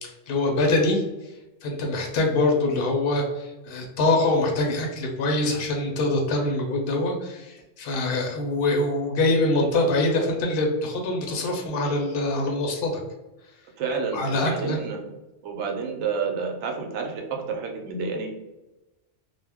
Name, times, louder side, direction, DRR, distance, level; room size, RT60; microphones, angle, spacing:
voice 1, 0.0-1.0 1.6-13.0 14.1-14.8, left 2 dB, 65° left, 1 dB, 0.7 m, -24 dB
voice 2, 13.8-15.0 15.4-18.3, right 5 dB, 80° right, 2 dB, 0.9 m, -29 dB
2.2 x 2.0 x 3.3 m, 1.0 s
omnidirectional pair, 1.2 m